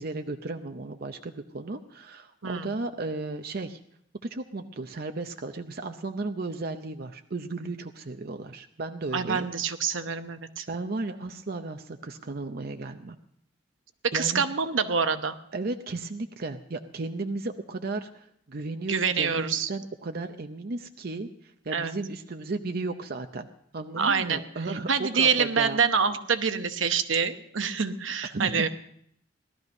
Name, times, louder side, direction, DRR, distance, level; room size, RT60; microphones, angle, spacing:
voice 1, 0.0-3.8 4.3-9.5 10.7-13.2 14.1-14.4 15.5-23.5 23.7-25.8 28.3-28.7, right 3 dB, 50° right, 6 dB, 0.7 m, -34 dB
voice 2, 9.1-10.7 14.0-15.4 18.8-19.7 21.7-21.9 24.0-24.4 24.9-28.7, right 6 dB, 80° right, 9 dB, 0.9 m, -26 dB
18.0 x 12.5 x 5.3 m, 0.71 s
head